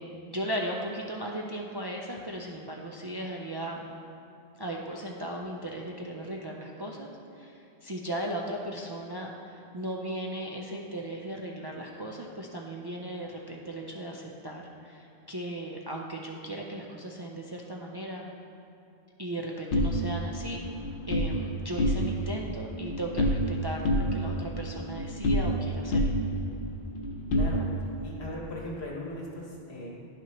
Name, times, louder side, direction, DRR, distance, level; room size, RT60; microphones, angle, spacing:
voice 1, 0.0-3.8 4.6-18.2 19.2-20.7 21.1-26.0, right 1 dB, 40° right, -1 dB, 0.3 m, -37 dB
sound 1, 19.7-21.3 21.7-22.3 22.6-23.5 23.8-25.6 25.9-28.0, left 1 dB, 60° left, 0.8 m, -28 dB
voice 2, 27.3-27.6 28.0-29.9, left 1 dB, 85° left, -3 dB, 1.6 m, -38 dB
10.5 x 5.8 x 2.9 m, 2.7 s
omnidirectional pair, 1.1 m